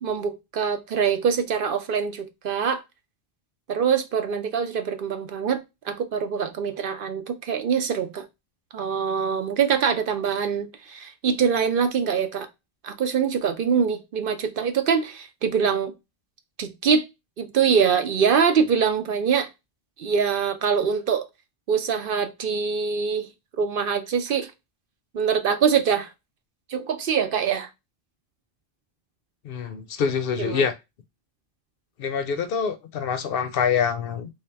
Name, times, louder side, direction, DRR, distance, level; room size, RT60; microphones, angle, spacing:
voice 1, 0.0-2.8 3.7-8.2 8.7-12.5 12.8-15.9 16.6-17.0 17.4-19.5 20.0-21.2 21.7-23.3 23.6-24.5 25.1-26.1 26.7-27.7 30.4-30.6, right 6 dB, 60° right, 0.7 m, -24 dB
voice 2, 29.4-30.7 32.0-34.3, left 6 dB, 65° left, 0.7 m, -25 dB
3.5 x 2.8 x 3.3 m
omnidirectional pair, 1.1 m